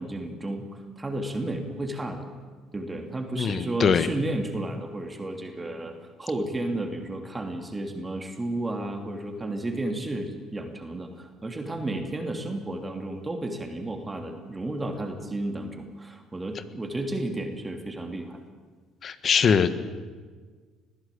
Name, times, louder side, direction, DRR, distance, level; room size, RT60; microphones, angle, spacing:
voice 1, 0.0-2.3 2.7-18.4, right 2 dB, 20° right, 4 dB, 3.0 m, -32 dB
voice 2, 3.3-4.1 19.0-19.7, left 6 dB, 50° left, 12 dB, 1.5 m, -22 dB
21.0 x 14.5 x 8.5 m, 1.5 s
hypercardioid pair, 60°, 0 cm